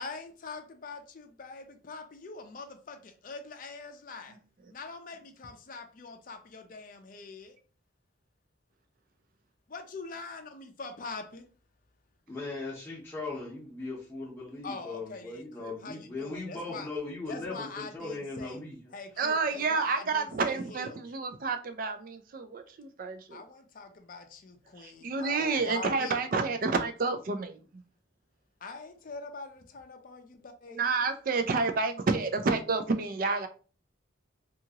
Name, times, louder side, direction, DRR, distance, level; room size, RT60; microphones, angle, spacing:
voice 1, 0.0-4.4 4.7-7.6 9.7-11.5 14.6-16.9 17.3-18.6 18.9-21.0 23.3-26.2 28.6-30.8, left 3 dB, 45° left, 0.4 m, -43 dB
voice 2, 12.3-18.8, left 3 dB, 10° left, 0.7 m, -38 dB
voice 3, 19.2-23.4 24.8-27.8 30.7-33.5, right 4 dB, 45° right, 0.4 m, -29 dB
2.8 x 2.4 x 2.8 m
head